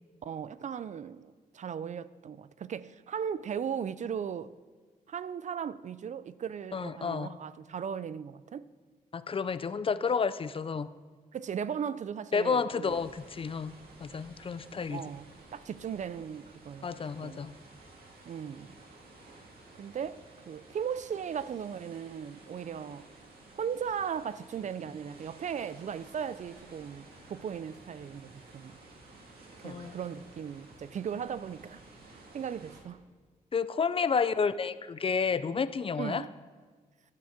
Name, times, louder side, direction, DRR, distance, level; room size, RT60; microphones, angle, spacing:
voice 1, 0.2-4.5 5.1-8.6 11.3-12.9 14.9-15.3 15.5-17.5 18.3-18.8 19.8-23.0 23.5-28.8 29.6-31.8 32.3-33.0 36.0-36.3, right 7 dB, 50° right, 0.4 m, -37 dB
voice 2, 6.7-7.4 9.1-10.9 12.3-15.0 16.8-17.5 29.6-29.9 33.5-36.3, left 5 dB, 35° left, 0.5 m, -31 dB
sound 1, 12.8-32.8, right 2 dB, 80° right, 2.2 m, -54 dB
11.5 x 6.2 x 7.2 m
cardioid pair, 70°, 15 cm